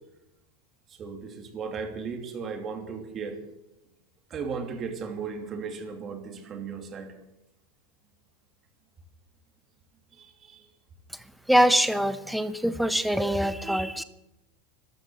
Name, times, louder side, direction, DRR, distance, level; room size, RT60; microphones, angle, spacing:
voice 1, 0.9-3.4 4.3-7.1 10.1-10.7, right 5 dB, 25° right, 5 dB, 2.7 m, -36 dB
voice 2, 11.5-14.0, equal, ahead, 11 dB, 0.9 m, -23 dB
13.5 x 12.5 x 7.6 m, 0.92 s
supercardioid pair, 155°, 0 cm